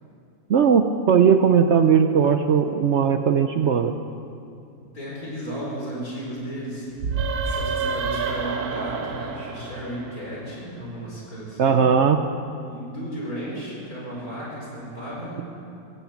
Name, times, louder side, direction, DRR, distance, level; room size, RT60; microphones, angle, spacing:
voice 1, 0.5-3.9 11.6-12.2, right 7 dB, 60° right, 7 dB, 0.8 m, -18 dB
voice 2, 4.9-6.9 7.2-11.8 12.7-15.4, equal, 70° left, -4 dB, 5.3 m, -34 dB
sound 1, 7.0-10.6, right 5 dB, 80° right, 1.5 m, -28 dB
16.5 x 15.0 x 6.0 m, 2.5 s
omnidirectional pair, 1.6 m